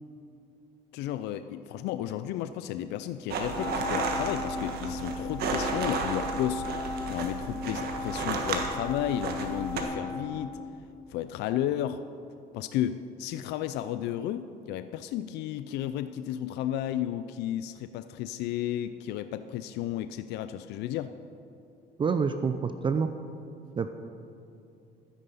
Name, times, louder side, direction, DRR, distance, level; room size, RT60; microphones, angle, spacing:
voice 1, 0.9-6.6 7.1-10.6 11.1-12.0 12.5-21.1, left 11 dB, 85° left, 11 dB, 0.4 m, -33 dB
sound 1, 3.3-9.8, right 4 dB, 65° right, 1.6 m, -33 dB
Wind instrument woodwind instrument, 3.5-11.2, left 3 dB, 20° left, 0.5 m, -37 dB
voice 2, 22.0-23.1 23.8-23.9, right 5 dB, 30° right, 9 dB, 0.5 m, -27 dB
13.0 x 9.6 x 5.5 m, 2.7 s
cardioid pair, 110°, 17 cm